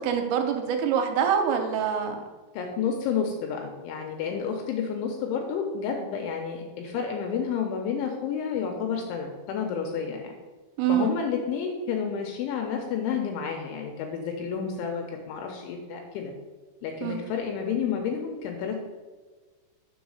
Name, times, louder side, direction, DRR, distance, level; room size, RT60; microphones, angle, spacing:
voice 1, 0.0-2.2 10.8-11.2 17.0-17.2, right 7 dB, 80° right, 5 dB, 3.1 m, -25 dB
voice 2, 2.5-10.4 10.9-16.3 16.8-18.8, left 6 dB, 80° left, 2 dB, 2.8 m, -30 dB
7.2 x 3.7 x 6.2 m, 1.3 s
omnidirectional pair, 5.9 m